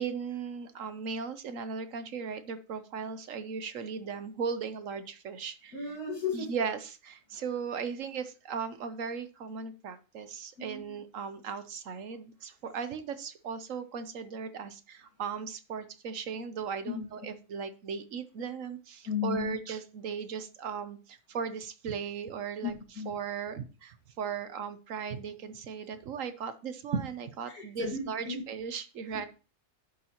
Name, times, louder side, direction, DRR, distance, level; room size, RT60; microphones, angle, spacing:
voice 1, 0.0-5.7 6.3-22.7 23.1-29.3, right 6 dB, 60° right, 11 dB, 1.1 m, -37 dB
voice 2, 5.7-6.5 7.3-7.4 10.6-11.0 16.9-17.3 19.0-19.6 22.6-23.1 27.5-28.4 29.1-29.3, left 5 dB, 70° left, -2 dB, 2.4 m, -35 dB
11.0 x 8.2 x 2.9 m, 0.34 s
omnidirectional pair, 1.7 m